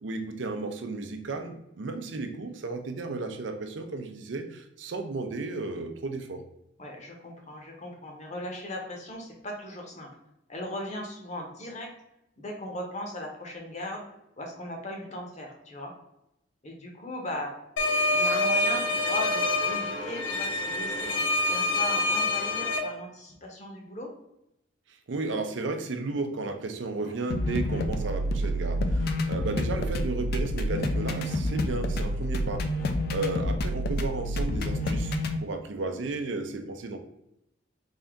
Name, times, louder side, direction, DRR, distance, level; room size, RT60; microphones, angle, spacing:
voice 1, 0.0-6.4 25.1-35.1 35.4-37.0, right 3 dB, 80° right, 6 dB, 0.5 m, -34 dB
voice 2, 6.8-10.1 10.5-11.9 12.4-14.0 14.4-15.9 16.6-17.5 18.1-24.1 27.0-27.1 32.8-33.1, left 1 dB, 40° left, 0 dB, 0.8 m, -38 dB
sound 1, 17.8-22.8, left 2 dB, 90° left, 0.8 m, -26 dB
sound 2, 27.3-35.4, left 1 dB, 55° left, 0.4 m, -28 dB
3.5 x 2.7 x 3.5 m, 0.83 s
head